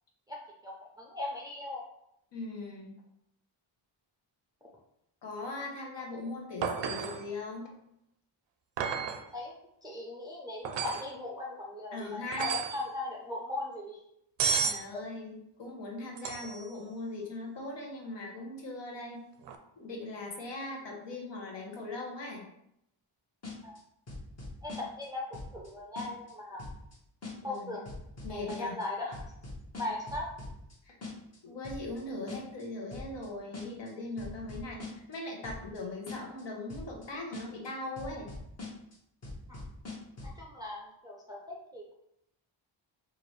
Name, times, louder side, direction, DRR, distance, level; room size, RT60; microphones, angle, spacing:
voice 1, 0.3-1.8 9.3-9.5 9.8-14.0 23.6-23.7 24.6-26.6 27.4-27.8 28.3-29.2 29.8-30.3 39.5-39.6 40.4-41.9, left 2 dB, 10° right, -4 dB, 0.4 m, -38 dB
voice 2, 2.3-3.0 5.2-7.7 11.9-12.5 14.6-19.2 19.8-22.4 27.4-27.8 28.2-28.8 30.8-30.9 31.4-34.8 35.1-38.3, left 2 dB, 60° left, 0 dB, 1.0 m, -40 dB
sound 1, 6.6-7.3 8.8-9.2 10.6-11.1 12.3-12.8 14.4-14.9 16.2-16.7 19.4-19.6, right 6 dB, 60° right, 0.5 m, -32 dB
sound 2, 23.4-23.8 24.1-25.1 25.3-25.7 26.0-26.3 26.6-26.9 27.2-27.6 27.9-28.8 29.1-30.7 31.0-31.4 31.6-32.0 32.3-32.6 32.9-33.3 33.5-33.9 34.2-35.2 35.4-35.8 36.1-36.4 36.7-37.1 37.3-37.7 38.0-38.9 39.2-40.4, left 3 dB, 30° left, 1.0 m, -42 dB
4.7 x 2.5 x 3.1 m, 0.77 s
wide cardioid pair, 170°, 49 cm